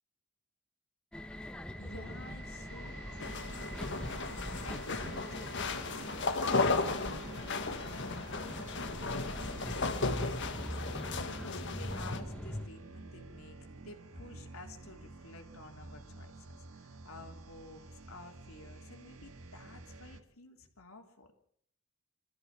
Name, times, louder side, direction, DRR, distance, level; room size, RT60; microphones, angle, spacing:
sound 1, 1.1-12.7, equal, 5° left, 1.1 m, -43 dB
sound 2, 1.7-20.2, right 3 dB, 80° right, 1.9 m, -50 dB
voice 1, 1.8-21.3, left 2 dB, 75° left, 3 dB, 3.3 m, -52 dB
sound 3, 3.2-12.2, left 3 dB, 55° left, 1.7 m, -35 dB
25.0 x 14.5 x 7.4 m, 0.65 s
head